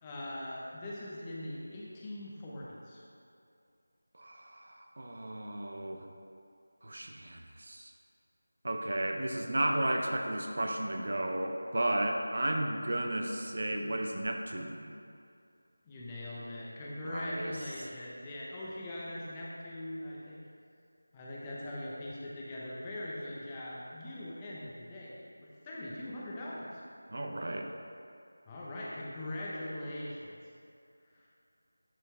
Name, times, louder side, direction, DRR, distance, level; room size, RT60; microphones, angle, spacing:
voice 1, 0.0-3.0 15.8-20.4 21.1-25.1 25.4-26.8 28.5-30.4, left 1 dB, 15° left, -6 dB, 0.9 m, -41 dB
voice 2, 4.1-6.0 6.8-7.9 8.6-14.9 17.0-17.6 27.1-27.7, right 1 dB, 55° right, 3 dB, 0.7 m, -33 dB
10.5 x 4.5 x 3.4 m, 2.4 s
figure-of-eight pair, 170°, 0 cm